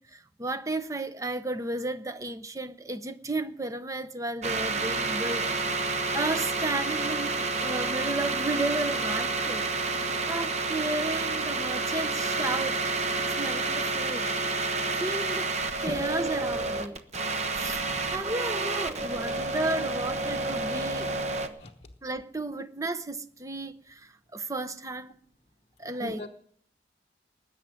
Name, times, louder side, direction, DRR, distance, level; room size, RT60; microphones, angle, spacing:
voice 1, 0.0-5.5 6.1-9.6 10.3-12.8 13.4-14.3 14.9-15.5 15.8-17.0 17.5-21.1 22.0-25.1 25.8-26.3, right 2 dB, 20° right, 0.8 m, -33 dB
sound 1, 4.4-21.5, right 3 dB, 40° right, 1.1 m, -29 dB
voice 2, 25.9-26.3, left 1 dB, 35° left, 0.9 m, -37 dB
20.0 x 7.2 x 9.7 m
head